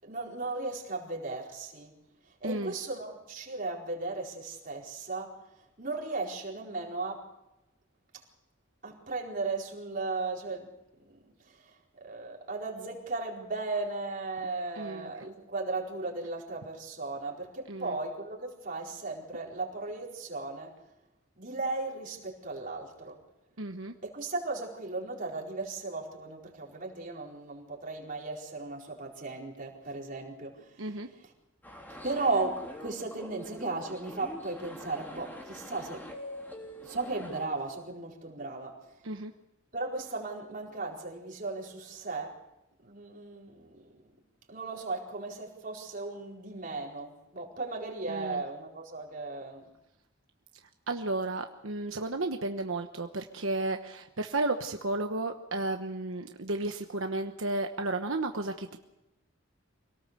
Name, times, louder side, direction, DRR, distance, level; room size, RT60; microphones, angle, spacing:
voice 1, 0.0-2.0 2.2-7.3 8.1-8.2 8.8-10.7 11.0-20.8 21.3-23.2 24.0-31.3 32.0-36.1 36.8-39.0 39.7-42.4 42.8-44.1 44.5-49.7, right 3 dB, 45° right, 4.6 m, -36 dB
voice 2, 14.8-15.1 17.7-17.9 23.6-23.9 30.8-31.1 39.0-39.3 48.1-48.4 50.9-58.8, right 2 dB, 80° right, 1.2 m, -33 dB
sound 1, 31.6-37.5, left 1 dB, 10° left, 3.6 m, -45 dB
26.0 x 18.5 x 6.8 m
head